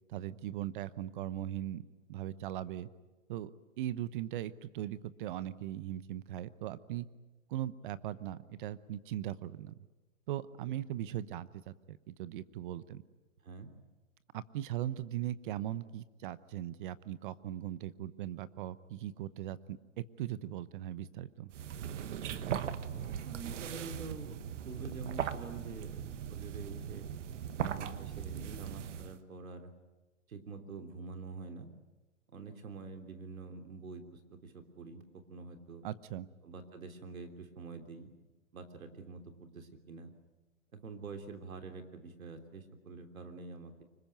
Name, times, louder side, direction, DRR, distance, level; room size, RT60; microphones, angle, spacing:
voice 1, 0.1-1.8 2.1-2.9 3.3-3.5 3.8-7.1 7.5-9.7 10.3-13.0 14.3-21.5 35.8-36.3, right 12 dB, 40° right, 16 dB, 0.9 m, -39 dB
sound 1, 21.5-29.2, right 9 dB, 60° right, 1.5 m, -39 dB
voice 2, 22.9-27.1 27.6-29.7 30.3-31.7 32.3-35.8 36.4-38.1 38.5-40.1 40.7-43.8, right 4 dB, 85° right, 6 dB, 3.4 m, -46 dB
25.0 x 21.0 x 9.2 m, 1.2 s
hypercardioid pair, 145°, 40 cm